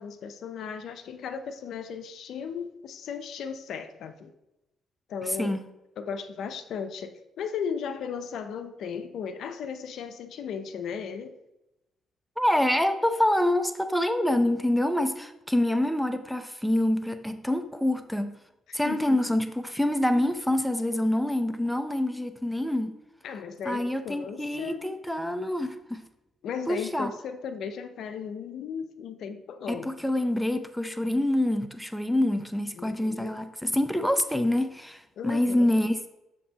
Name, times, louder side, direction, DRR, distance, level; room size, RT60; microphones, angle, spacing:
voice 1, 0.0-4.3 5.1-5.6 6.0-11.3 18.7-19.2 23.2-24.8 26.4-29.9 32.7-33.4 35.2-35.7, left 6 dB, 70° left, 9 dB, 0.6 m, -36 dB
voice 2, 12.4-18.4 18.7-22.9 23.6-26.0 26.7-27.1 29.7-36.1, left 1 dB, ahead, 8 dB, 0.7 m, -26 dB
7.5 x 6.8 x 2.9 m, 0.91 s
cardioid pair, 85°, 0 cm